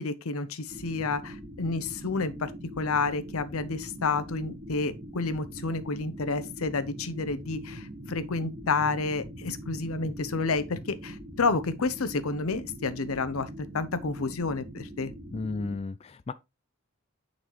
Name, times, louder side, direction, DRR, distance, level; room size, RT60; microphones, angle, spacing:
voice 1, 0.0-2.5 2.8-13.5 13.7-15.1, left 4 dB, 90° left, 0.7 m, -30 dB
sound 1, 0.7-15.8, equal, 30° right, 1.3 m, -42 dB
voice 2, 15.3-16.3, left 3 dB, 30° left, 0.3 m, -33 dB
9.2 x 4.0 x 3.0 m
head